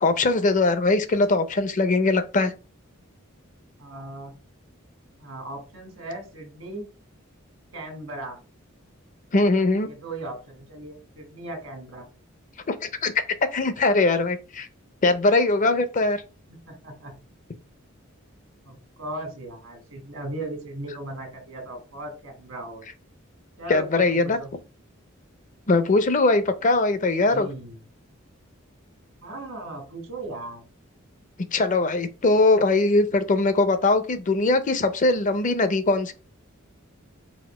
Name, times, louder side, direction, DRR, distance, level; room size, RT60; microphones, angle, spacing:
voice 1, 0.0-2.5 9.3-9.9 12.7-12.8 13.0-13.1 13.5-14.7 15.0-16.2 23.7-24.4 25.7-27.5 31.5-36.1, left 2 dB, 40° left, 0.5 m, -21 dB
voice 2, 3.8-4.4 5.2-6.9 7.7-8.4 9.9-12.1 16.5-17.1 18.6-22.8 23.6-24.5 27.3-27.8 29.2-30.6, right 2 dB, 85° right, 1.6 m, -37 dB
4.2 x 2.5 x 4.7 m
head